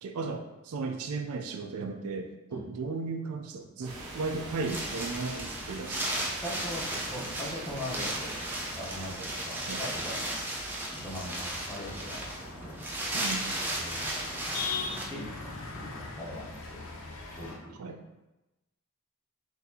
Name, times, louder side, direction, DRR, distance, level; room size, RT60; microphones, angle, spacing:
voice 1, 0.0-6.3 9.7-9.8 13.1-13.5 17.8-18.0, right 4 dB, 70° right, 5 dB, 0.4 m, -35 dB
Wind, 3.8-15.0, right 1 dB, 10° right, 0.5 m, -35 dB
sound 1, 3.8-9.1, right 2 dB, 85° right, 0.8 m, -44 dB
voice 2, 6.4-8.4 8.7-10.6 11.0-12.2 12.6-12.9 13.7-14.2 15.1-16.8 17.3-17.7, left 1 dB, 15° left, -6 dB, 0.8 m, -40 dB
sound 2, 11.0-17.6, left 4 dB, 65° left, 0.6 m, -41 dB
4.0 x 2.6 x 2.7 m, 1.0 s
head